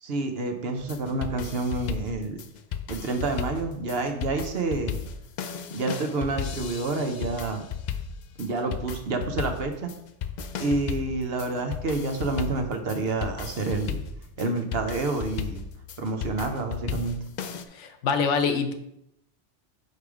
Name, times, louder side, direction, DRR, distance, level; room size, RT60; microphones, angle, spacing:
voice 1, 0.0-2.4 2.9-5.0 5.7-7.6 8.4-9.9 10.6-14.0 14.4-15.6 16.0-17.2, right 3 dB, 60° right, 5 dB, 1.0 m, -28 dB
sound 1, 0.8-17.6, left 7 dB, 60° left, 0.5 m, -35 dB
voice 2, 17.7-18.7, left 5 dB, 85° left, 8 dB, 1.1 m, -25 dB
5.4 x 4.8 x 4.9 m, 0.78 s
omnidirectional pair, 1.2 m